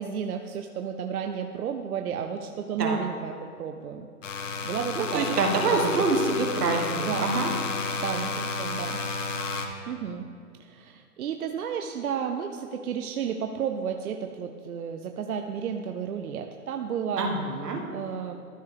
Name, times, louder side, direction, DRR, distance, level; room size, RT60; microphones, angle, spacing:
voice 1, 0.0-4.1 4.3-5.4 5.7-6.1 6.9-7.3 8.0-9.0 9.9-10.2 10.6-17.3 17.9-18.4, right 7 dB, 70° right, 5 dB, 0.6 m, -32 dB
sound 1, 4.2-9.7, left 4 dB, 55° left, 0.8 m, -31 dB
voice 2, 5.0-7.5 17.2-17.8, right 3 dB, 85° right, 2 dB, 1.5 m, -26 dB
13.0 x 4.7 x 3.4 m, 2.4 s
hypercardioid pair, 180°, 46 cm